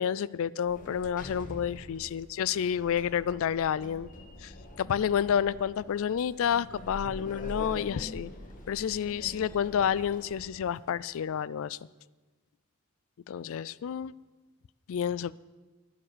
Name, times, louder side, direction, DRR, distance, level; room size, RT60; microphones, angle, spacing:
voice 1, 0.0-4.1 4.4-4.5 4.8-8.3 8.7-11.8 13.3-14.1 14.9-15.4, left 8 dB, 65° left, 0.3 m, -29 dB
Sliding door, 0.7-10.8, left 1 dB, 40° left, 1.6 m, -44 dB
11.0 x 10.0 x 6.7 m
head